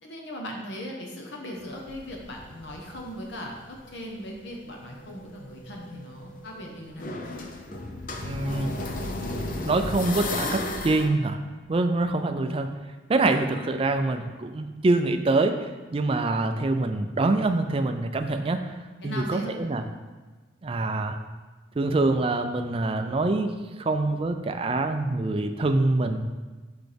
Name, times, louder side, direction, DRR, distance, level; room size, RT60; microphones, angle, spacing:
voice 1, 0.0-7.1 19.0-19.6, equal, 65° left, 0 dB, 1.0 m, -38 dB
sound 1, 1.6-3.8 4.2-11.1, left 2 dB, 45° left, 0.6 m, -34 dB
voice 2, 8.2-8.7 9.6-11.4 11.7-12.8 13.1-18.6 19.0-19.8 20.6-21.2 21.8-23.5 23.8-26.2, right 2 dB, 30° right, 6 dB, 0.3 m, -25 dB
6.1 x 5.7 x 3.4 m, 1.3 s
head